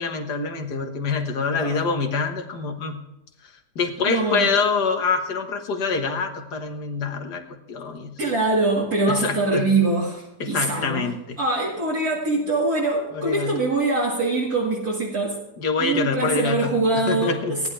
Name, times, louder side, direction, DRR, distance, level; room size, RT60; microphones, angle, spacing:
voice 1, 0.0-3.0 3.8-8.2 9.1-9.7 10.4-11.4 13.1-13.5 15.6-17.6, left 5 dB, 80° left, 4 dB, 2.0 m, -25 dB
voice 2, 4.0-4.5 8.2-11.1 11.4-15.4 15.8-17.7, right 3 dB, 60° right, -5 dB, 2.6 m, -23 dB
18.0 x 10.5 x 3.3 m, 0.93 s
omnidirectional pair, 1.7 m